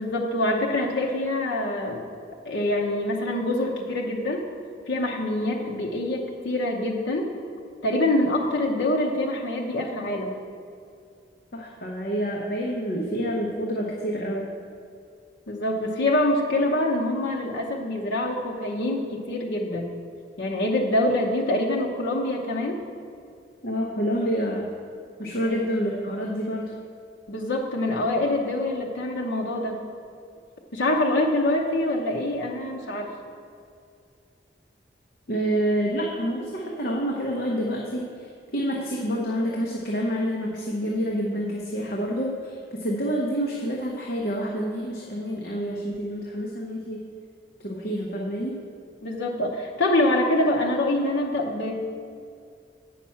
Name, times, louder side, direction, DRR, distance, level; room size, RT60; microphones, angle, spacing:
voice 1, 0.0-2.0 2.4-4.5 4.9-7.4 7.8-10.4 15.5-19.9 20.4-22.8 25.4-25.7 27.3-29.8 30.7-33.1 49.0-51.8, left 1 dB, 80° left, -1 dB, 0.9 m, -25 dB
voice 2, 11.5-14.5 23.6-24.7 25.2-26.7 35.3-47.0 47.6-48.6, equal, 55° left, -2 dB, 0.9 m, -28 dB
8.4 x 5.9 x 5.7 m, 2.3 s
head